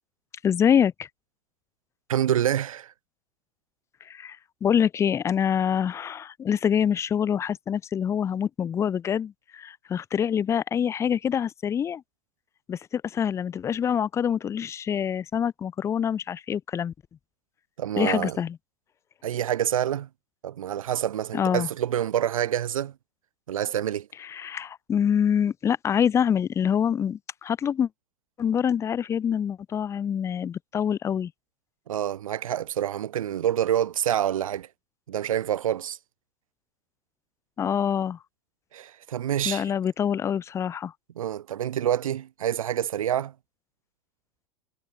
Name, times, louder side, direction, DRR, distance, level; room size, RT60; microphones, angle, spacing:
voice 1, 0.4-0.9 4.1-12.0 12.7-16.9 18.0-18.6 21.3-21.7 24.2-27.9 28.4-31.3 37.6-38.2 39.5-40.9, left 8 dB, 15° left, 0.4 m, -25 dB
voice 2, 2.1-2.9 17.8-18.4 19.2-20.1 20.4-22.9 23.5-24.1 31.9-34.7 35.1-36.0 38.7-39.6 41.2-43.3, right 10 dB, 65° right, 1.8 m, -27 dB
figure-of-eight pair, 90°, 19 cm